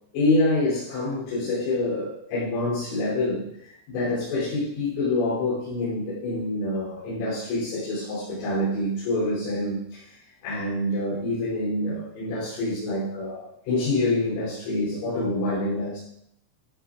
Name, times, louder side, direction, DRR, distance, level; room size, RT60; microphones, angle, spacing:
voice 1, 0.1-10.0 10.4-16.0, left 2 dB, 85° left, -11 dB, 6.2 m, -26 dB
15.0 x 9.7 x 2.5 m, 0.75 s
omnidirectional pair, 5.9 m